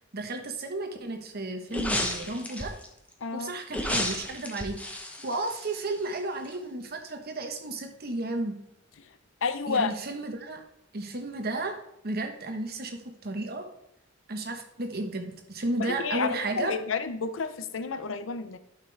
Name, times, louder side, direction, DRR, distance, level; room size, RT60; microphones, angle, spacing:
voice 1, 0.1-2.7 3.3-4.8 5.2-8.5 9.7-10.6 10.9-13.7 14.3-16.8, right 2 dB, 55° right, 5 dB, 1.2 m, -33 dB
sound 1, 1.7-2.9 3.7-6.2 6.5-6.6, left 1 dB, 5° left, 1.0 m, -32 dB
voice 2, 3.2-3.5 9.4-9.9 15.8-18.6, left 5 dB, 90° left, 12 dB, 0.6 m, -30 dB
11.5 x 5.9 x 3.4 m, 0.80 s
head